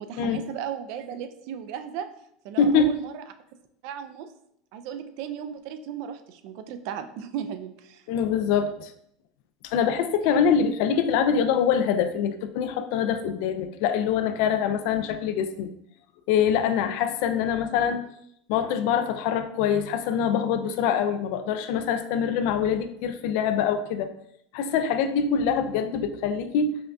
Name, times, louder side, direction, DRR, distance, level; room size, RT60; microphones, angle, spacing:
voice 1, 0.0-2.1 2.4-3.2 3.8-4.3 4.7-8.1, right 8 dB, 60° right, 9 dB, 0.3 m, -36 dB
voice 2, 2.6-2.9 8.1-8.9 9.6-15.7 16.3-18.1 18.5-24.1 24.5-26.8, left 7 dB, 65° left, 9 dB, 0.3 m, -24 dB
5.4 x 2.2 x 2.5 m, 0.73 s
supercardioid pair, 145°, 0 cm